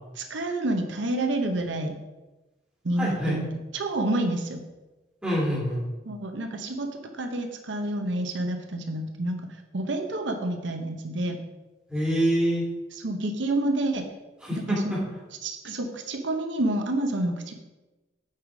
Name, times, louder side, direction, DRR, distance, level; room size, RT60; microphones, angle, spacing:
voice 1, 0.2-1.9 2.8-3.5 3.7-4.6 6.0-9.4 9.7-11.4 12.9-14.1 14.5-15.0 15.4-17.5, right 1 dB, 90° right, 5 dB, 0.9 m, -28 dB
voice 2, 3.0-3.4 5.2-5.8 11.9-12.6 14.4-15.0, equal, 5° right, -6 dB, 2.8 m, -25 dB
8.5 x 4.8 x 5.1 m, 1.1 s
head